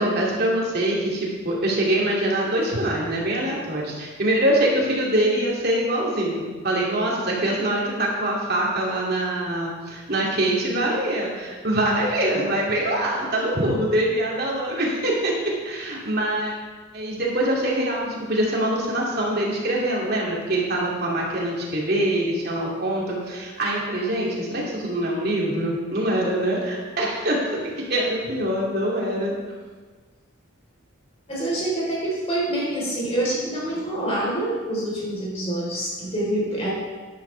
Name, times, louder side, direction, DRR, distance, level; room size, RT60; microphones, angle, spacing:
voice 1, 0.0-15.4 15.6-16.5 16.9-27.4 27.8-29.3, right 1 dB, 50° right, -3 dB, 2.7 m, -24 dB
voice 2, 31.3-36.7, right 1 dB, 30° left, -5 dB, 4.0 m, -26 dB
12.0 x 11.0 x 3.4 m, 1.4 s
head